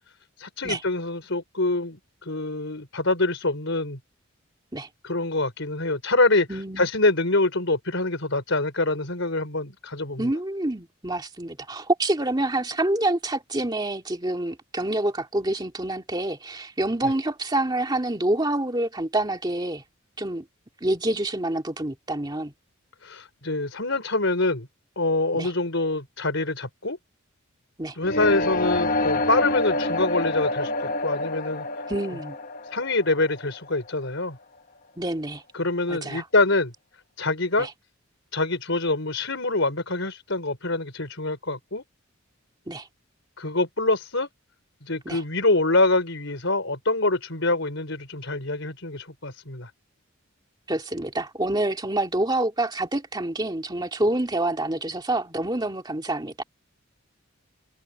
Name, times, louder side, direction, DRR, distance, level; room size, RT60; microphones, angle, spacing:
voice 1, 0.4-4.0 5.0-10.3 23.0-24.7 25.0-27.0 28.0-31.7 32.6-34.4 35.5-36.7 37.2-37.7 38.3-41.8 43.4-44.3 44.8-49.7, left 2 dB, 65° left, 5.2 m, -25 dB
voice 2, 6.5-6.9 10.2-19.8 20.2-20.5 20.8-22.5 25.3-25.5 27.8-28.0 31.9-32.4 35.0-35.4 35.9-36.3 37.6-37.7 42.7-42.9 45.1-45.2 50.7-56.4, right 1 dB, 20° right, 2.3 m, -27 dB
sound 1, 28.0-33.9, left 2 dB, 40° left, 1.1 m, -27 dB
head